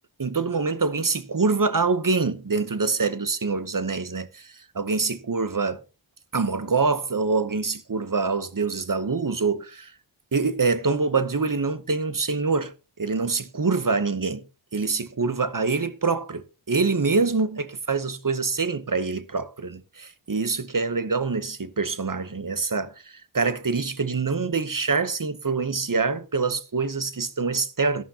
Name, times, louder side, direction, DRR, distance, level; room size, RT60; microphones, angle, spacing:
voice 1, 0.2-5.8 6.3-9.9 10.3-12.7 13.0-14.4 14.7-22.9 23.3-28.0, right 4 dB, 45° right, 0.9 m, -25 dB
12.5 x 11.5 x 2.8 m
wide cardioid pair, 60°, 46 cm